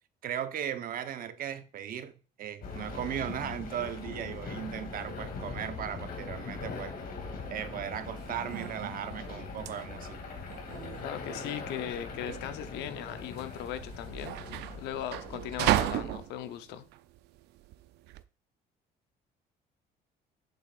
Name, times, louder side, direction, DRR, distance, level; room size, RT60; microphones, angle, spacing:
voice 1, 0.2-6.9 7.5-10.2, right 10 dB, 60° right, 0.9 m, -37 dB
sound 1, 2.6-16.2, left 4 dB, 60° left, 2.5 m, -41 dB
sound 2, 8.2-18.2, right 14 dB, 80° right, 0.5 m, -35 dB
voice 2, 11.0-14.4 14.8-16.9, left 11 dB, 90° left, 0.8 m, -38 dB
7.8 x 7.0 x 2.5 m
cardioid pair, 110°, 17 cm